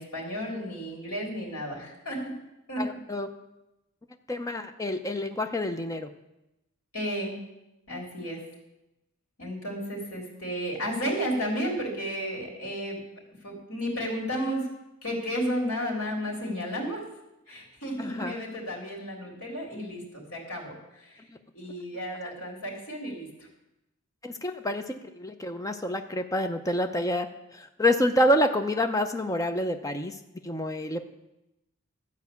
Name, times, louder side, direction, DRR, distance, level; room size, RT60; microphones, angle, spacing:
voice 1, 0.0-2.2 2.7-2.8 6.9-7.4 7.9-8.4 9.4-13.0 13.4-14.7 15.0-17.0 17.5-20.7 21.5-23.3, equal, 75° left, -1 dB, 3.7 m, -32 dB
voice 2, 2.8-3.3 4.3-6.1 18.0-18.3 21.3-21.4 22.2-22.3 24.2-30.2 30.4-31.0, left 1 dB, 15° left, 6 dB, 0.6 m, -28 dB
13.0 x 4.8 x 8.2 m, 0.94 s
head